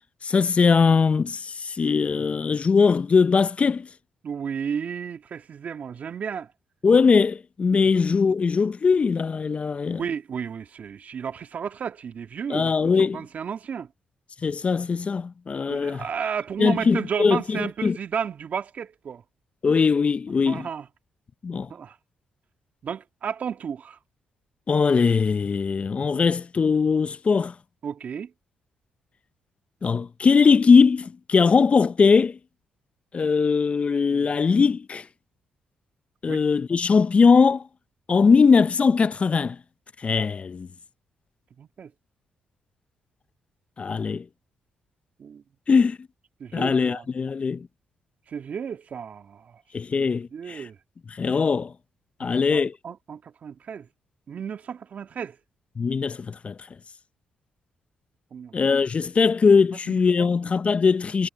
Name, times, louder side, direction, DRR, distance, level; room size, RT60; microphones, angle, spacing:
voice 1, 0.2-3.9 6.8-10.0 12.5-13.2 14.4-16.0 16.6-18.0 19.6-20.7 21.4-21.7 24.7-27.5 29.8-32.4 33.1-35.1 36.2-37.6 38.1-39.6 40.0-40.7 43.8-44.2 45.7-46.0 46.5-47.7 49.7-50.7 51.1-51.7 52.2-52.7 55.8-56.6 58.5-61.3, left 5 dB, 45° left, 0.6 m, -20 dB
voice 2, 4.2-6.5 7.7-8.0 10.0-13.9 15.7-19.2 20.4-20.9 21.7-22.0 22.8-24.0 27.8-28.3 34.1-34.3 36.3-36.4 41.6-41.9 45.2-45.4 46.4-47.0 48.3-49.6 50.0-50.8 52.2-53.9 54.3-55.4 58.3-58.6 59.9-60.3, right 7 dB, 60° right, 1.8 m, -33 dB
supercardioid pair, 50°, 3 cm